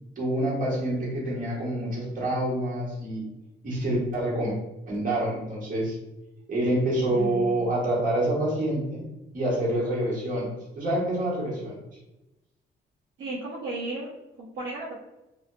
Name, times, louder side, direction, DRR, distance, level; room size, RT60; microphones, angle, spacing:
voice 1, 0.2-3.3 3.6-4.5 4.9-6.0 6.5-9.0 9.3-11.8, right 1 dB, 40° right, -5 dB, 1.4 m, -27 dB
voice 2, 7.0-7.8 13.2-14.9, right 2 dB, 70° right, -5 dB, 0.6 m, -35 dB
2.8 x 2.4 x 2.3 m, 0.96 s
cardioid pair, 90°, 20 cm